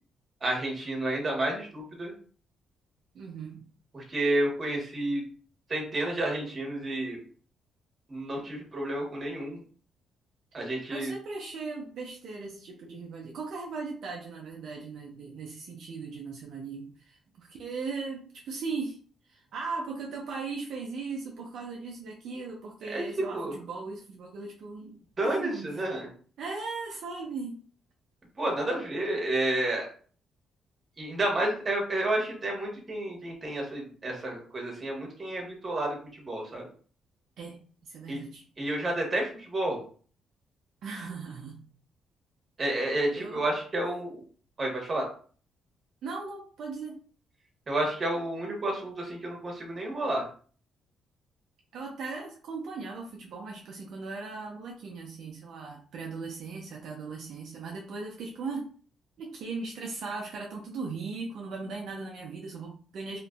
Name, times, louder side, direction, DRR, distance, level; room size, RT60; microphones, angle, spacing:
voice 1, 0.4-2.1 3.9-5.2 5.7-7.2 8.1-9.6 10.5-11.1 22.9-23.0 23.3-23.5 25.2-26.1 28.4-29.9 31.0-36.6 38.1-38.2 38.6-39.8 42.6-44.2 44.6-45.0 47.7-50.2, right 1 dB, 35° right, 0 dB, 1.1 m, -30 dB
voice 2, 3.1-3.6 10.9-19.0 19.2-25.8 26.4-27.6 37.4-38.4 40.8-41.6 43.1-43.5 46.0-47.0 51.7-58.7 59.2-63.2, right 4 dB, 70° right, 0 dB, 0.5 m, -38 dB
2.9 x 2.5 x 2.3 m, 0.42 s
cardioid pair, 90°, 0 cm